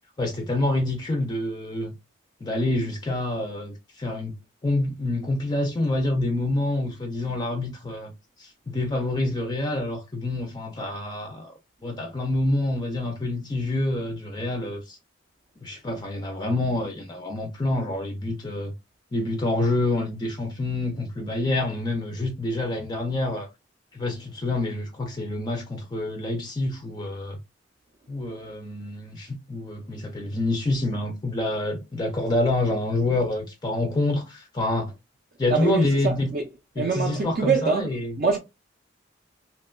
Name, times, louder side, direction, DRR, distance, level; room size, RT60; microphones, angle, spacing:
voice 1, 0.2-1.9 2.4-4.4 4.6-8.1 8.4-11.5 11.8-15.0 15.6-18.7 19.1-23.5 23.9-27.4 28.1-34.9 35.4-36.3 36.8-38.2, left 2 dB, 20° left, 0.3 m, -27 dB
voice 2, 35.5-36.5 36.8-38.4, right 5 dB, 50° right, 0.4 m, -25 dB
2.9 x 2.1 x 2.2 m
head